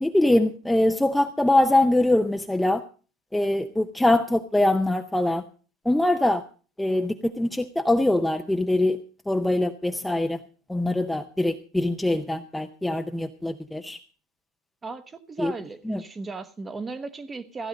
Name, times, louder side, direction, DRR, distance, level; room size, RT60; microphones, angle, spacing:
voice 1, 0.0-2.8 3.3-5.4 5.9-6.4 6.8-9.0 9.3-10.4 10.7-14.0 15.4-15.5 15.9-16.0, left 1 dB, 5° left, 6 dB, 0.6 m, -23 dB
voice 2, 14.8-17.7, right 3 dB, 15° right, 13 dB, 0.9 m, -36 dB
15.5 x 9.9 x 5.2 m, 0.38 s
supercardioid pair, 155°, 0 cm